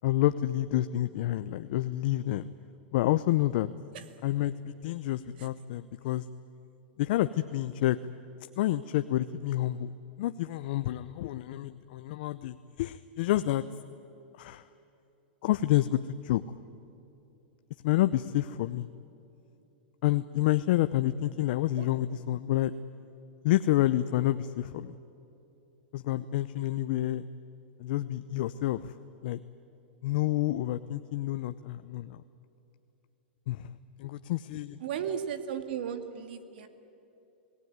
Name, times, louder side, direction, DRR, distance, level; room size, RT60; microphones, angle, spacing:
voice 1, 0.0-2.5 2.9-3.7 4.2-6.2 7.0-8.0 8.6-9.9 10.2-13.6 14.4-14.6 15.4-16.4 17.8-18.9 20.0-22.7 23.4-25.0 25.9-27.3 27.8-28.9 29.2-29.4 30.0-32.2 33.5-33.7 34.0-34.8, left 14 dB, 60° left, 11 dB, 0.7 m, -28 dB
voice 2, 34.8-36.7, right 8 dB, 65° right, 9 dB, 2.3 m, -35 dB
27.5 x 18.5 x 9.6 m, 2.8 s
hypercardioid pair, 120°, 6 cm